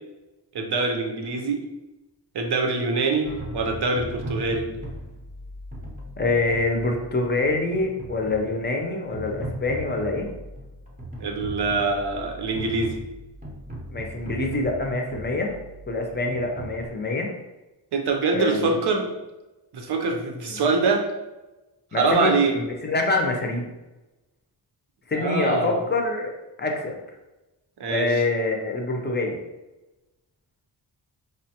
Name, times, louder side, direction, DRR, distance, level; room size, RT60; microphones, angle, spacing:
voice 1, 0.5-1.6 2.3-3.3 3.5-4.6 11.2-12.9 17.9-19.1 19.7-21.0 22.0-22.5 25.1-25.8 27.8-28.2, right 3 dB, 65° right, 2 dB, 0.7 m, -24 dB
sound 1, 3.2-16.9, right 1 dB, 20° right, 0.6 m, -38 dB
voice 2, 6.2-10.3 13.9-15.5 15.9-17.3 18.3-18.8 20.1-20.7 21.9-23.7 25.1-26.3 26.6-27.0 27.9-29.4, left 2 dB, 25° left, 2 dB, 0.5 m, -26 dB
4.8 x 2.2 x 2.8 m, 1.1 s
wide cardioid pair, 130°, 42 cm